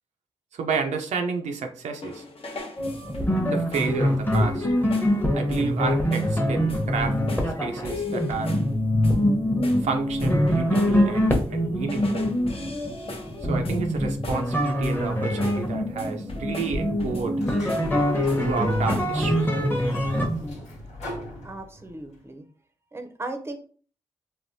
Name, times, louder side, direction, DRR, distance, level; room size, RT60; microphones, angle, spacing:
voice 1, 0.5-2.2 3.5-4.7 5.3-7.2 7.6-8.5 9.8-12.3 13.4-17.4 18.4-19.4, right 5 dB, 85° right, 4 dB, 0.5 m, -30 dB
sound 1, 2.0-3.4 3.7-4.0 4.3-4.6 4.9-5.2 5.5-5.8 6.1-6.4 6.7-7.6 7.8-8.7 9.0-9.3 9.6-11.6 11.9-14.5 14.8-15.1 15.4-15.7 16.0-17.4 17.7-18.4 18.7-19.2, left 2 dB, 55° left, 0.7 m, -40 dB
sound 2, 2.8-20.5, equal, 20° left, 0.9 m, -24 dB
Sliding door, 17.3-22.1, equal, 80° left, 1.2 m, -40 dB
voice 2, 21.4-22.5 22.9-23.6, right 2 dB, 20° right, 6 dB, 0.6 m, -36 dB
3.3 x 2.2 x 2.6 m, 0.42 s
cardioid pair, 55°, 12 cm